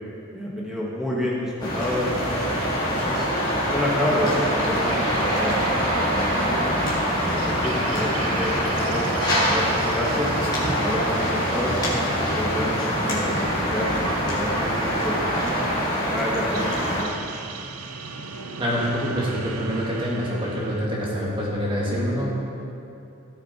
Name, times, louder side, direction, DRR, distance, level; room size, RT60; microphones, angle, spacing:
voice 1, 0.3-2.6 2.9-3.3 3.7-5.6 6.0-6.8 7.3-8.1 8.4-10.3 10.7-13.9 14.3-15.4 15.9-16.7 17.0-17.5, left 1 dB, ahead, -6 dB, 1.8 m, -29 dB
sound 1, 1.6-17.0, equal, 20° left, 2.1 m, -24 dB
sound 2, 4.4-20.9, right 4 dB, 85° right, 0.7 m, -38 dB
voice 2, 18.6-22.3, equal, 25° right, -5 dB, 2.1 m, -26 dB
16.5 x 6.5 x 4.5 m, 2.7 s
head